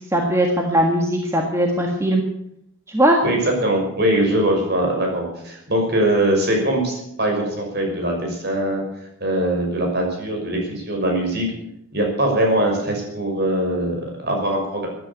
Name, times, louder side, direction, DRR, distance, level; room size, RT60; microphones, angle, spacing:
voice 1, 0.1-2.2 2.9-3.2, right 1 dB, 15° right, 1 dB, 1.7 m, -19 dB
voice 2, 3.2-8.8 9.2-11.5 11.9-14.9, right 1 dB, 50° right, 1 dB, 5.9 m, -21 dB
14.5 x 11.0 x 8.3 m, 0.78 s
head